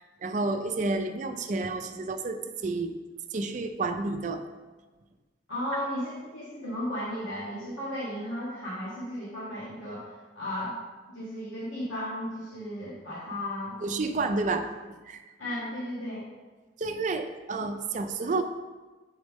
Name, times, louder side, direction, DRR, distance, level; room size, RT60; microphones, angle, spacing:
voice 1, 0.2-2.9 3.3-4.4 13.8-14.7 15.1-15.2 16.8-18.4, right 3 dB, 40° right, 7 dB, 0.4 m, -30 dB
voice 2, 5.5-10.7 11.1-13.8 15.4-16.2, left 1 dB, 85° left, -7 dB, 1.3 m, -35 dB
6.2 x 4.3 x 3.5 m, 1.2 s
head